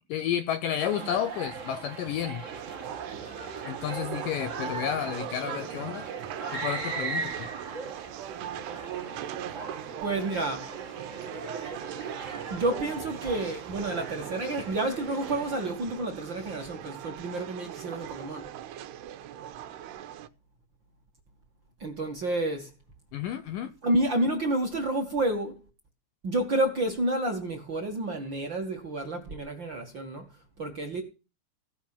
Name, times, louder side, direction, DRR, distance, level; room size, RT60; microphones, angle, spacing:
voice 1, 0.1-2.4 3.7-6.1 6.5-7.5 23.1-23.7, left 10 dB, 75° left, 2.1 m, -31 dB
sound 1, 0.8-15.7, right 4 dB, 60° right, 0.7 m, -39 dB
sound 2, 2.4-20.3, right 11 dB, 90° right, 3.0 m, -40 dB
voice 2, 10.0-10.7 12.5-18.5 21.8-22.7 23.8-25.7 26.2-30.3 30.6-31.0, right 2 dB, 40° right, 2.0 m, -29 dB
17.0 x 5.9 x 7.2 m
omnidirectional pair, 4.7 m